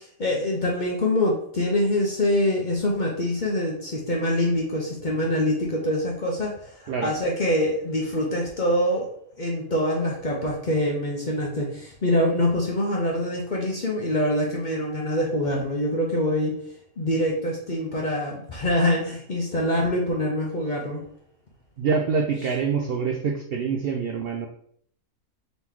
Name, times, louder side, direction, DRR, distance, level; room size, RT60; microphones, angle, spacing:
voice 1, 0.0-16.6 17.0-21.0, left 1 dB, 45° left, -1 dB, 0.6 m, -25 dB
voice 2, 21.8-24.5, right 5 dB, 75° right, 3 dB, 0.5 m, -25 dB
4.0 x 3.0 x 3.6 m, 0.64 s
omnidirectional pair, 1.5 m